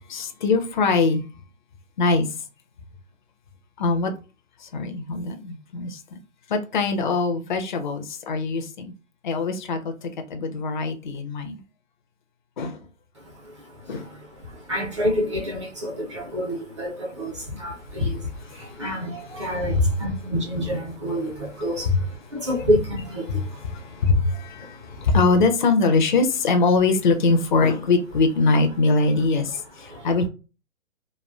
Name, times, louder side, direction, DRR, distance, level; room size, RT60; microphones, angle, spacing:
voice 1, 0.1-1.2 2.0-2.3 3.8-4.1 4.6-6.0 6.5-8.9 9.2-11.6 12.6-12.8 13.9-14.0 18.8-18.9 19.7-19.9 21.9-22.0 23.3-23.4 23.7-30.3, left 3 dB, 40° left, 0.4 m, -22 dB
voice 2, 13.1-25.2 29.5-30.2, equal, 25° right, 0.5 m, -29 dB
3.1 x 2.2 x 2.2 m
hypercardioid pair, 150°, 39 cm